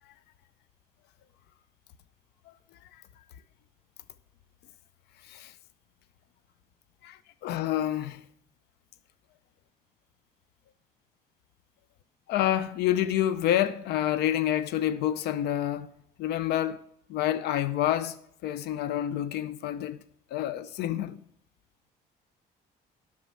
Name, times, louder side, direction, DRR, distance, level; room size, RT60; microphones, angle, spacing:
voice 1, 5.2-5.5 7.0-8.2 12.3-15.9 16.2-16.8 17.1-20.0 20.3-21.2, left 12 dB, 80° left, 0.5 m, -28 dB
8.2 x 6.6 x 7.4 m
cardioid pair, 110°, 17 cm